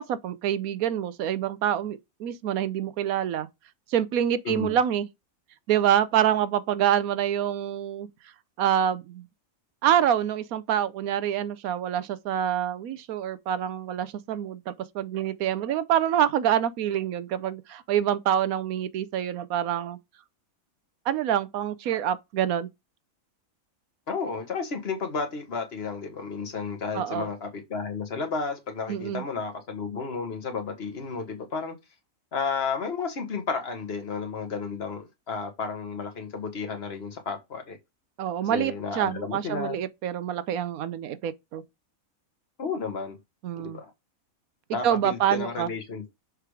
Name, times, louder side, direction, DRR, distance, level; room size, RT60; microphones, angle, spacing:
voice 1, 0.0-3.5 3.9-5.1 5.7-8.1 8.6-9.3 9.8-20.0 21.1-22.7 26.9-27.3 28.9-29.2 38.2-41.6 43.4-43.8 44.8-45.7, right 10 dB, 85° right, 1.1 m, -26 dB
voice 2, 4.4-4.8 24.1-31.8 32.3-37.8 38.4-39.8 42.6-43.2 43.6-43.9 44.7-46.1, left 5 dB, 45° left, 1.5 m, -32 dB
6.7 x 3.3 x 4.8 m
omnidirectional pair, 1.5 m